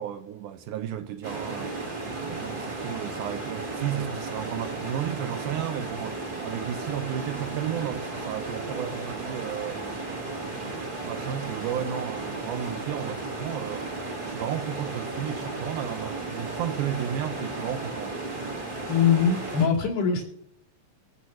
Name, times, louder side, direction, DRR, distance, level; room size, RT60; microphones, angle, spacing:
voice 1, 0.0-1.7 2.2-10.1 11.0-13.9 14.2-18.2, right 10 dB, 80° right, 2.1 m, -33 dB
sound 1, 1.2-19.7, right 3 dB, 40° right, 0.7 m, -34 dB
voice 2, 18.9-20.2, left 7 dB, 65° left, 4.1 m, -22 dB
23.0 x 8.0 x 3.1 m
omnidirectional pair, 3.8 m